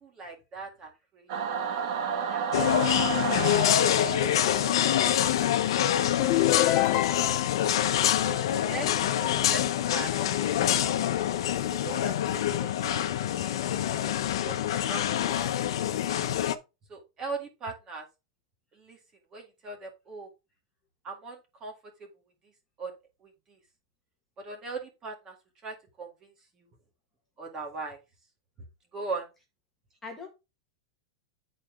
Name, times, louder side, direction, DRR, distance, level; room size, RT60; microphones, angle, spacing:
voice 1, 0.0-1.3 2.3-2.7 3.2-3.4 4.1-5.0 8.2-8.9 9.2-10.1 11.7-13.1 14.7-15.0 15.7-15.8 16.9-18.1 18.8-19.0 19.3-20.3 21.0-21.7 22.8-22.9 24.4-25.3 25.6-26.3 27.4-28.0 28.9-29.2, right 3 dB, 20° right, 1.9 m, -39 dB
voice 2, 0.8-0.9 30.0-30.3, left 4 dB, 10° left, 1.5 m, -47 dB
Singing / Musical instrument, 1.3-6.0, right 6 dB, 50° right, 1.4 m, -32 dB
sound 1, 2.5-16.6, left 11 dB, 70° left, 0.8 m, -26 dB
sound 2, 6.2-7.7, left 16 dB, 35° left, 0.4 m, -26 dB
9.9 x 4.2 x 3.7 m
supercardioid pair, 165°, 3 cm